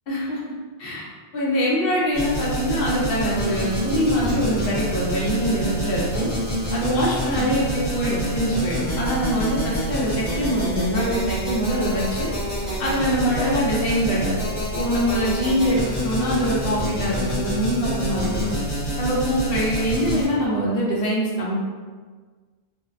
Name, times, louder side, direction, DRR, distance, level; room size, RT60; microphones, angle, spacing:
voice 1, 0.1-0.4 0.8-1.1 1.3-6.3 6.7-12.3 12.8-14.3 14.7-18.6 19.0-21.6, equal, 65° left, -5 dB, 0.8 m, -23 dB
sound 1, 2.1-20.3, equal, 30° left, 1.2 m, -27 dB
sound 2, 4.3-18.1, right 2 dB, 30° right, 0.4 m, -40 dB
2.6 x 2.0 x 2.4 m, 1.5 s
omnidirectional pair, 1.1 m